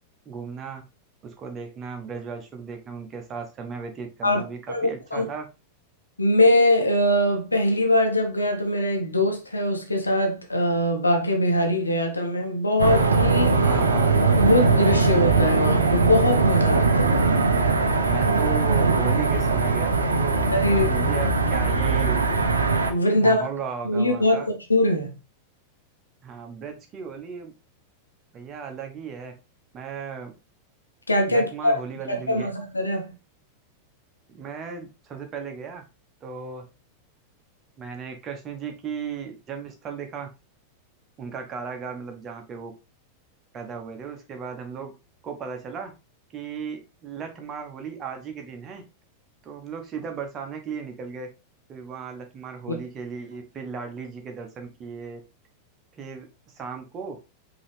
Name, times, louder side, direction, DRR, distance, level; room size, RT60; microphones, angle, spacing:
voice 1, 0.2-0.8 1.2-5.5 13.6-14.1 18.0-22.2 23.2-24.5 26.2-27.5 28.3-29.3 29.7-30.3 31.3-32.5 34.3-35.8 36.2-36.6 37.8-40.3 41.2-42.7 43.5-45.0 45.2-45.9 46.3-48.8 49.4-51.3 51.7-55.2 56.0-56.2 56.5-57.2, right 6 dB, 30° right, 1.1 m, -35 dB
voice 2, 4.2-5.3 6.2-13.6 14.4-17.2 20.5-21.1 22.9-23.4 23.8-25.1 31.1-31.8 32.1-33.1 52.7-52.8, left 1 dB, 80° left, 1.0 m, -22 dB
sound 1, 12.8-22.9, right 4 dB, 75° right, 0.6 m, -21 dB
5.3 x 3.0 x 3.3 m
figure-of-eight pair, 90°, 0 cm